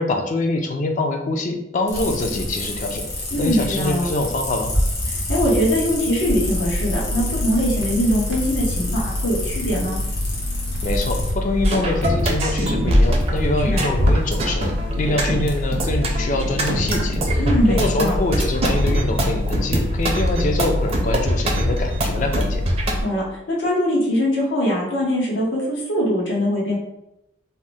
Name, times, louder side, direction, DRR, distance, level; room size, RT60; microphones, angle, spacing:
voice 1, 0.0-4.7 10.8-22.7, left 2 dB, 40° left, 5 dB, 0.3 m, -24 dB
sound 1, 1.9-11.3, left 1 dB, 60° left, 1.0 m, -28 dB
voice 2, 3.3-4.0 5.1-10.0 13.6-13.8 17.4-18.1 23.0-26.8, equal, 90° left, -4 dB, 1.0 m, -22 dB
sound 2, 6.3-23.0, left 1 dB, 80° right, 0.6 m, -26 dB
sound 3, 11.6-23.0, right 1 dB, 35° right, 0.4 m, -22 dB
2.7 x 2.0 x 3.4 m, 0.85 s
head